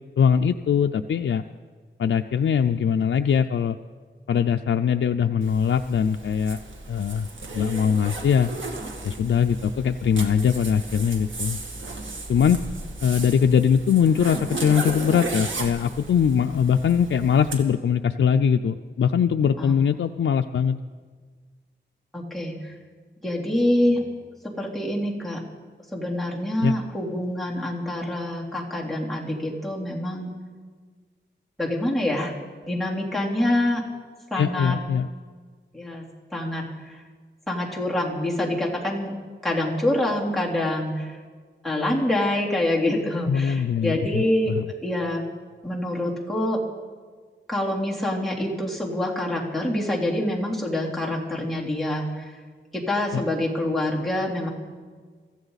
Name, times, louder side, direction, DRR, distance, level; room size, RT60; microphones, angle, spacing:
voice 1, 0.2-1.4 2.0-3.8 4.3-6.6 6.9-7.3 7.5-8.5 9.0-11.6 12.3-12.6 13.0-20.8 26.6-26.8 34.4-35.1 43.3-44.7 53.1-53.2, left 7 dB, 85° left, 6 dB, 0.5 m, -21 dB
Zipper (clothing), 5.4-17.6, right 2 dB, 75° right, 2.0 m, -35 dB
voice 2, 22.1-22.7 23.2-24.0 24.4-25.4 25.9-30.3 31.6-32.3 32.6-33.8 34.3-34.8 35.7-36.0 36.3-37.0 37.5-39.1 39.4-41.2 41.6-44.5 44.8-45.2 45.6-46.6 47.5-52.3 52.7-54.5, left 1 dB, ahead, -4 dB, 3.3 m, -26 dB
24.0 x 14.5 x 4.1 m, 1.5 s
wide cardioid pair, 95°, 20 cm